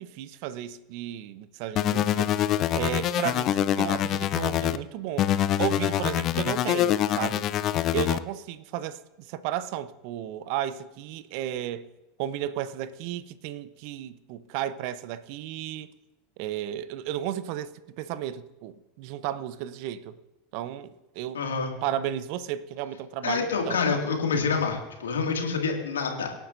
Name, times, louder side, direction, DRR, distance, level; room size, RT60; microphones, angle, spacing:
voice 1, 0.0-2.3 2.7-5.3 5.6-7.5 7.9-11.9 12.2-15.9 16.4-20.1 20.5-21.4 21.8-24.0, right 11 dB, 60° right, 0.8 m, -33 dB
sound 1, 1.8-4.8 5.2-8.2, left 12 dB, 45° left, 0.6 m, -25 dB
voice 2, 21.3-21.7 23.2-26.3, left 5 dB, 85° left, 2.2 m, -27 dB
24.5 x 10.0 x 2.7 m
hypercardioid pair, 80°, 0 cm